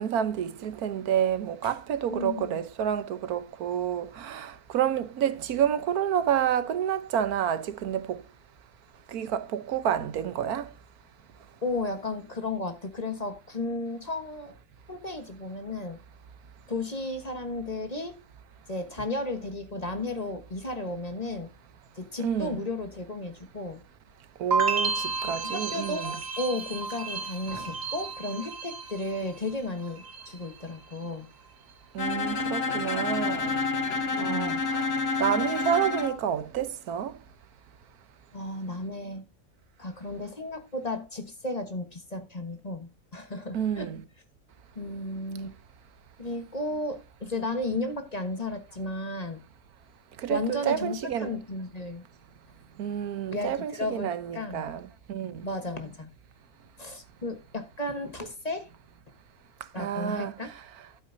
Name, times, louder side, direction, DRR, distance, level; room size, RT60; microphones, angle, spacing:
voice 1, 0.0-8.2 9.1-10.7 22.2-22.6 24.4-26.2 31.9-33.5 34.2-34.9 35.2-37.1 43.5-44.0 50.2-51.4 52.8-55.5 59.8-60.6, right 9 dB, 90° right, 1.4 m, -29 dB
voice 2, 2.1-2.6 11.6-14.6 14.9-16.0 16.7-18.2 18.7-21.5 22.0-23.8 25.2-31.3 34.1-34.6 38.3-39.2 39.8-43.9 44.7-45.5 46.2-49.4 50.3-52.0 53.3-54.6 55.4-56.1 56.8-58.7 59.7-60.5, left 2 dB, 30° left, 1.3 m, -34 dB
sound 1, 24.5-29.5 29.8-30.5, right 4 dB, 45° right, 1.4 m, -32 dB
Bowed string instrument, 32.0-36.2, left 4 dB, 50° left, 1.1 m, -29 dB
12.5 x 8.5 x 2.7 m
omnidirectional pair, 1.5 m